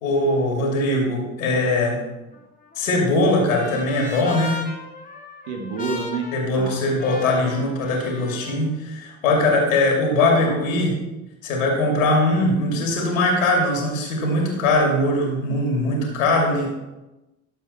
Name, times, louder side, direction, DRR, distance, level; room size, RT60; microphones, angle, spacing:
voice 1, 0.0-2.0 2.8-4.6 6.3-11.0 11.4-16.7, left 2 dB, 75° left, 0 dB, 2.5 m, -21 dB
Trumpet, 2.3-8.6, left 2 dB, 20° left, 1.9 m, -37 dB
voice 2, 5.5-6.8 10.3-10.7, right 4 dB, 65° right, 3 dB, 1.8 m, -29 dB
11.5 x 7.1 x 4.2 m, 1.0 s
figure-of-eight pair, 55°, 40 cm